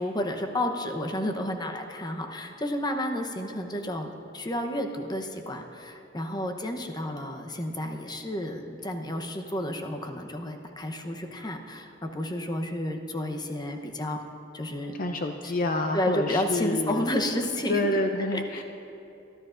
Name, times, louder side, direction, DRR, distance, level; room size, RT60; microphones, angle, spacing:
voice 1, 0.0-14.2 14.5-15.0 15.4-15.5 15.9-18.0 18.3-18.6, left 1 dB, 25° left, 4 dB, 0.9 m, -31 dB
voice 2, 14.9-17.1 17.7-18.6, left 1 dB, 50° left, 5 dB, 0.5 m, -28 dB
22.5 x 13.5 x 2.6 m, 2.8 s
head